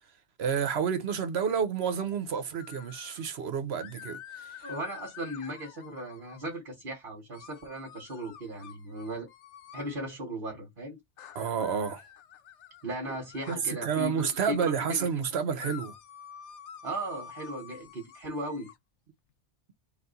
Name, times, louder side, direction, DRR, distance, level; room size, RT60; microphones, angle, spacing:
voice 1, 0.4-4.7 11.3-12.0 13.5-15.9, right 7 dB, 65° right, 1.0 m, -30 dB
sound 1, 2.6-3.3 3.8-6.6 7.3-10.0 11.2-14.6 15.6-18.7, left 9 dB, 90° left, 1.0 m, -49 dB
voice 2, 4.6-9.3 9.7-11.0 12.8-15.6 16.8-18.7, right 1 dB, 50° right, 1.5 m, -37 dB
4.1 x 2.5 x 4.0 m
omnidirectional pair, 1.2 m